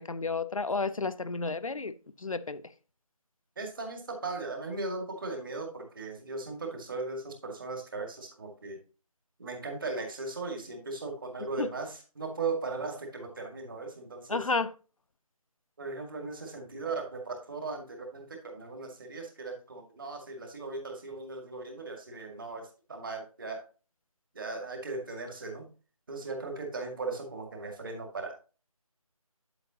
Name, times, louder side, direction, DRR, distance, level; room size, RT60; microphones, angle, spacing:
voice 1, 0.0-2.6 11.6-11.7 14.3-14.7, left 4 dB, 65° left, 0.6 m, -32 dB
voice 2, 3.6-8.8 9.4-14.5 15.8-23.7 24.3-25.7 26.1-28.3, right 3 dB, 35° right, 2.1 m, -38 dB
9.0 x 7.9 x 2.9 m
figure-of-eight pair, 160°, 19 cm